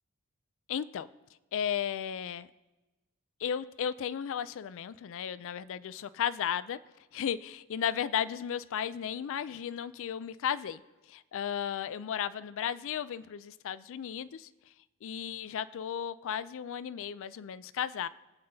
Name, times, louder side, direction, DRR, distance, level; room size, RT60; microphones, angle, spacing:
voice 1, 0.7-1.1 1.5-2.5 3.4-6.8 7.1-10.8 11.1-14.5 15.0-18.1, left 8 dB, 60° left, 16 dB, 0.4 m, -34 dB
20.5 x 8.7 x 2.7 m, 1.1 s
head